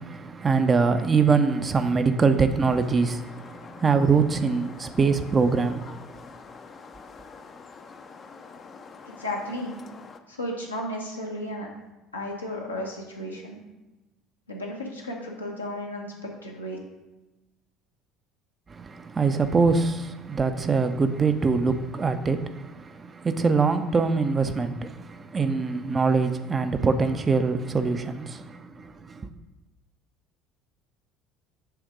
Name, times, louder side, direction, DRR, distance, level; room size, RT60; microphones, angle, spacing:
voice 1, 0.0-6.0 18.7-29.3, right 4 dB, 25° right, 0.5 m, -24 dB
sound 1, 2.7-10.2, left 4 dB, 30° left, 0.5 m, -46 dB
voice 2, 9.1-9.8 10.3-11.7 12.1-13.6 14.5-16.8, left 1 dB, 85° left, 1.1 m, -34 dB
7.9 x 3.5 x 4.9 m
figure-of-eight pair, 60°, 0 cm